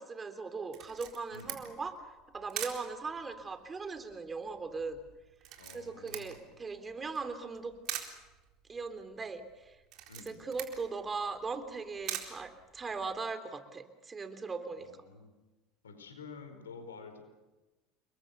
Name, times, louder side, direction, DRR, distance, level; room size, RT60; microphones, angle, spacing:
voice 1, 0.0-1.9 2.3-5.0 5.7-7.7 8.7-9.8 10.2-14.9, right 4 dB, 25° right, 9 dB, 3.3 m, -39 dB
Camera, 0.7-13.2, right 11 dB, 55° right, 4.1 m, -45 dB
voice 2, 1.3-1.6 5.6-6.5 10.1-10.5 14.8-15.3 15.8-17.2, left 4 dB, 90° left, 7 dB, 4.7 m, -49 dB
29.5 x 22.5 x 6.7 m, 1.1 s
hypercardioid pair, 75°, 0 cm